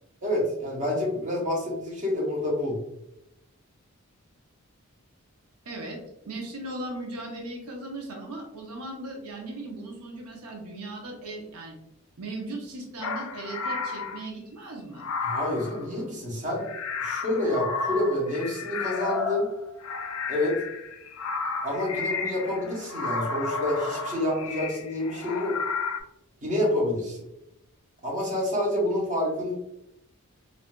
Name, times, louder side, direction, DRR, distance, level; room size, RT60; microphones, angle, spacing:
voice 1, 0.2-2.8 15.2-16.7 17.0-19.5 20.3-20.6 21.6-25.6 26.4-27.2 28.0-29.5, left 1 dB, 35° right, -3 dB, 0.9 m, -28 dB
voice 2, 5.6-11.7 12.2-15.0, right 2 dB, 85° right, 1 dB, 0.7 m, -38 dB
sound 1, 13.0-14.3 15.0-15.9 16.6-26.0, left 4 dB, 70° left, 0.4 m, -32 dB
3.6 x 2.4 x 2.2 m, 0.83 s
head